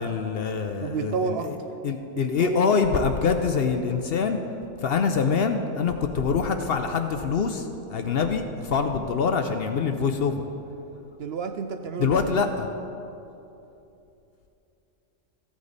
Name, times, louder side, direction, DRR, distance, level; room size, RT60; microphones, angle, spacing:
voice 1, 0.0-1.5 1.8-4.4 4.8-10.5 12.0-12.8, left 5 dB, 60° left, 7 dB, 0.7 m, -25 dB
voice 2, 0.8-1.5 2.4-2.7 11.2-12.2, right 5 dB, 65° right, 7 dB, 0.7 m, -30 dB
15.0 x 8.3 x 4.0 m, 2.8 s
omnidirectional pair, 1.3 m